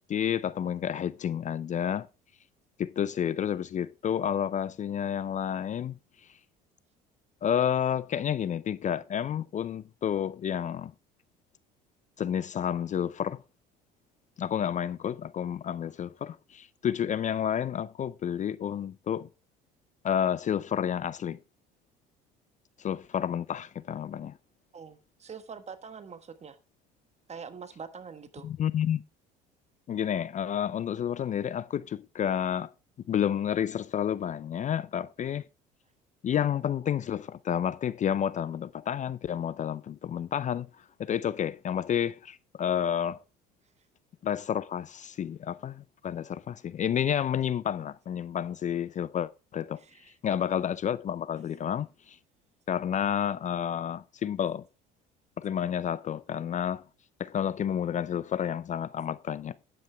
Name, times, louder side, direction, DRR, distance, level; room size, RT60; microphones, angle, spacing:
voice 1, 0.1-2.1 2.8-6.0 7.4-10.9 12.2-13.4 14.4-19.3 20.0-21.4 22.8-24.3 28.4-29.0 29.9-32.7 33.1-35.5 36.2-40.7 41.0-43.2 44.2-49.8 50.2-52.2 52.7-54.6 55.4-56.8 57.2-59.5, left 9 dB, 40° left, 0.5 m, -30 dB
voice 2, 24.7-26.6 27.3-28.5 49.8-50.1, right 6 dB, 35° right, 1.4 m, -44 dB
10.0 x 8.9 x 3.4 m
supercardioid pair, 75°, 20 cm